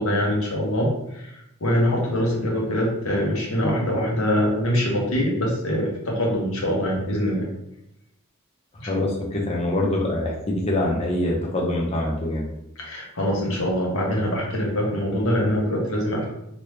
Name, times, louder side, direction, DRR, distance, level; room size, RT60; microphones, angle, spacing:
voice 1, 0.0-7.5 8.8-9.1 12.8-16.3, equal, 80° left, -3 dB, 1.1 m, -24 dB
voice 2, 8.9-12.4, left 1 dB, 30° left, -2 dB, 0.7 m, -24 dB
2.9 x 2.6 x 3.4 m, 0.82 s
head